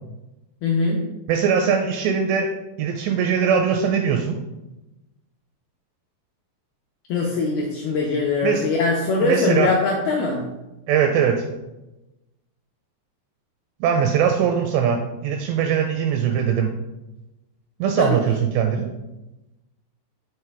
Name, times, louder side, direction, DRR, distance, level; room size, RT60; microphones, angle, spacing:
voice 1, 0.6-1.0 7.1-10.4 18.0-18.2, left 4 dB, 85° left, -2 dB, 2.2 m, -22 dB
voice 2, 1.3-2.5 2.8-4.4 8.4-8.7 9.2-9.7 10.9-11.4 13.8-16.7 17.8-18.9, right 7 dB, 85° right, 4 dB, 2.4 m, -21 dB
7.4 x 3.2 x 4.6 m, 0.99 s
omnidirectional pair, 5.3 m